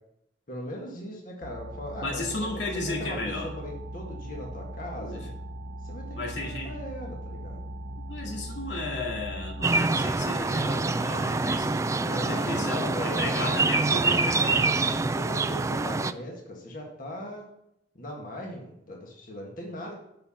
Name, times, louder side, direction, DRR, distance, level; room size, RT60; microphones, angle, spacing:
voice 1, 0.5-2.2 2.5-5.2 5.8-7.7 8.3-8.5 12.0-13.5 13.8-17.5 18.0-19.9, equal, 50° left, -2 dB, 1.8 m, -39 dB
sound 1, 1.4-9.7, equal, 60° right, 0.7 m, -39 dB
voice 2, 2.0-3.5 5.0-5.3 6.2-6.8 8.0-15.0, left 2 dB, 85° left, -2 dB, 2.4 m, -34 dB
sound 2, 9.6-16.1, right 3 dB, 15° right, 0.3 m, -26 dB
7.7 x 5.7 x 7.2 m, 0.79 s
head